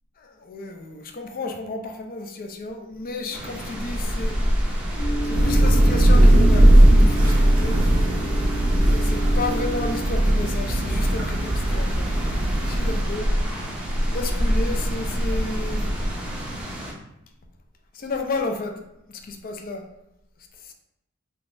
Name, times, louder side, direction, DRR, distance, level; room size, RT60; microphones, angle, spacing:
voice 1, 0.2-4.4 5.2-7.8 8.9-12.3 12.7-13.3 14.1-15.9 17.9-18.8 19.1-19.8 20.6-20.7, left 3 dB, 40° left, 4 dB, 0.4 m, -32 dB
sound 1, 3.3-16.9, equal, 5° right, 0.5 m, -28 dB
sound 2, 5.0-10.0, right 1 dB, 80° left, 1.2 m, -33 dB
Thunder / Rain, 5.3-13.0, right 1 dB, 65° right, 0.6 m, -18 dB
3.4 x 3.0 x 2.6 m, 0.87 s
head